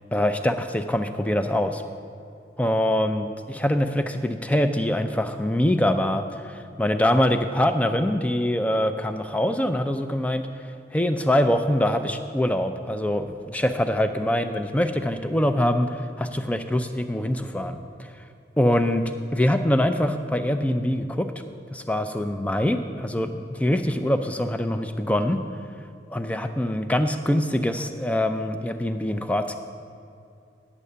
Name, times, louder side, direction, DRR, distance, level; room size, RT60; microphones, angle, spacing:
voice 1, 0.1-1.8 2.6-10.5 10.9-18.1 18.6-21.3 21.7-25.4 26.1-29.6, left 1 dB, 10° left, 8 dB, 0.4 m, -24 dB
9.9 x 7.3 x 6.8 m, 2.5 s
head